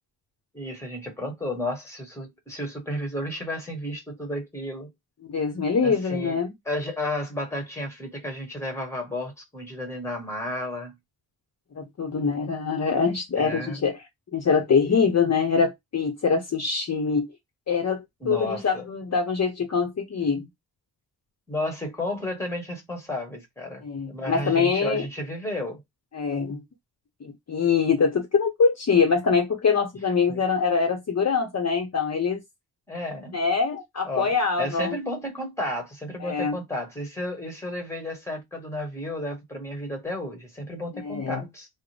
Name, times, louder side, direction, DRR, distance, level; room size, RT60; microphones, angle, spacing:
voice 1, 0.5-4.9 5.8-6.4 6.6-10.9 13.4-13.8 14.8-14.9 18.2-18.9 21.5-25.8 30.3-30.4 32.9-33.4 34.0-41.7, left 1 dB, 5° left, 1.4 m, -32 dB
voice 2, 5.2-6.5 11.7-14.0 14.3-17.3 17.7-20.5 23.8-25.1 26.1-26.6 27.2-32.4 33.3-34.9 36.2-36.6 40.9-41.4, left 5 dB, 40° left, 0.8 m, -24 dB
3.7 x 2.1 x 3.3 m
wide cardioid pair, 105°, 39 cm